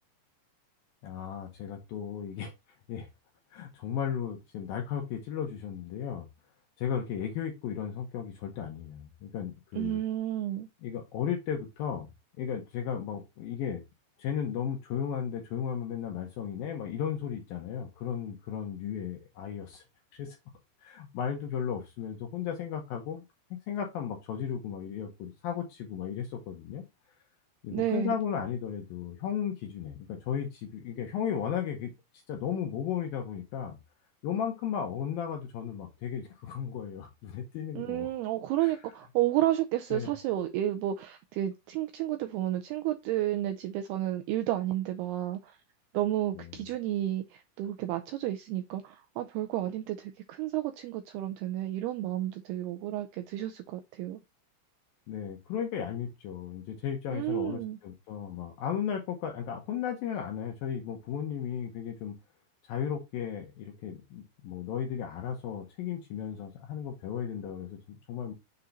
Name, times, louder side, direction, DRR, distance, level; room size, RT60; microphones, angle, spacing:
voice 1, 1.0-2.5 2.9-3.1 3.5-6.3 6.8-10.0 10.8-12.1 12.4-13.8 14.2-19.8 20.1-20.4 20.8-23.2 23.5-26.8 27.6-31.9 32.3-33.8 34.2-38.1 38.6-38.8 39.9-40.1 46.3-46.5 55.1-62.2 62.7-68.3, left 8 dB, 75° left, 2.2 m, -35 dB
voice 2, 9.8-10.7 27.7-28.2 37.8-45.6 45.9-54.2 57.1-57.8, right 13 dB, 85° right, 2.3 m, -31 dB
6.9 x 3.7 x 4.0 m
omnidirectional pair, 5.1 m